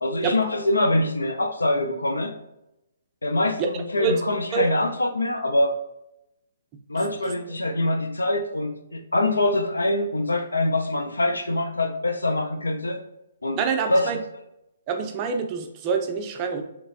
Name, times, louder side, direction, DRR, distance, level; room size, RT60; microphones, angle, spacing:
voice 1, 0.0-2.3 3.2-5.7 6.9-13.0 13.4-13.6 13.9-14.1, left 1 dB, 80° left, 6 dB, 0.5 m, -24 dB
voice 2, 7.0-7.3 13.6-14.2 14.9-16.6, right 5 dB, 30° right, 4 dB, 0.5 m, -26 dB
3.2 x 3.1 x 2.5 m, 0.86 s
figure-of-eight pair, 130°, 0 cm